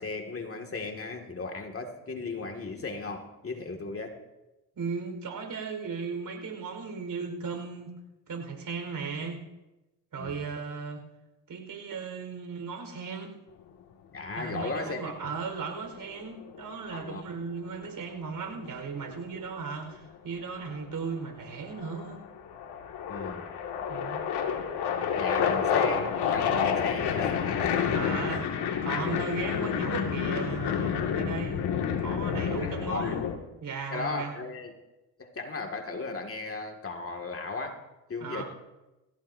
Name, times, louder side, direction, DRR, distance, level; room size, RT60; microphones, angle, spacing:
voice 1, 0.0-4.2 10.2-10.4 14.1-15.3 16.9-17.2 23.1-23.5 25.1-28.0 28.3-28.4 32.4-33.1 33.9-34.7 35.2-37.8 38.1-38.4, left 3 dB, 30° left, 3 dB, 2.3 m, -36 dB
voice 2, 4.7-8.0 8.3-9.4 10.1-11.0 11.5-13.3 14.3-22.2 23.9-24.2 27.9-28.4 28.8-31.7 32.0-33.2 33.6-34.4 38.2-38.4, right 5 dB, 50° right, 4 dB, 4.9 m, -36 dB
sound 1, 15.4-16.6 18.4-19.7 20.6-21.1 21.4-33.4, left 7 dB, 65° left, 2.3 m, -29 dB
28.5 x 15.5 x 2.8 m, 1.0 s
supercardioid pair, 75°, 43 cm